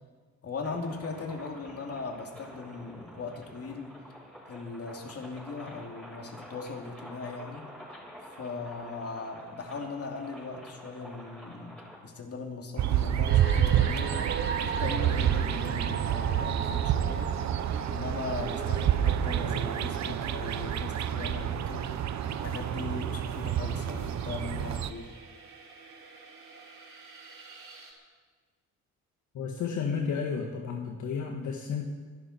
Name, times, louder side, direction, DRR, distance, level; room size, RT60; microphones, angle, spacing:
voice 1, 0.4-4.0 4.5-7.7 8.4-11.8 12.0-14.2 14.5-17.3 17.9-22.0 22.3-25.1, left 4 dB, 50° left, 2 dB, 2.9 m, -39 dB
sound 1, 0.6-12.0, equal, 5° left, 5.6 m, -48 dB
sound 2, 12.8-24.9, right 10 dB, 65° right, 1.0 m, -28 dB
sound 3, 13.3-27.9, right 5 dB, 50° right, 4.8 m, -41 dB
voice 2, 29.4-31.9, left 6 dB, 75° left, 1 dB, 1.7 m, -32 dB
24.0 x 12.0 x 4.5 m, 1.4 s
cardioid pair, 90°, 30 cm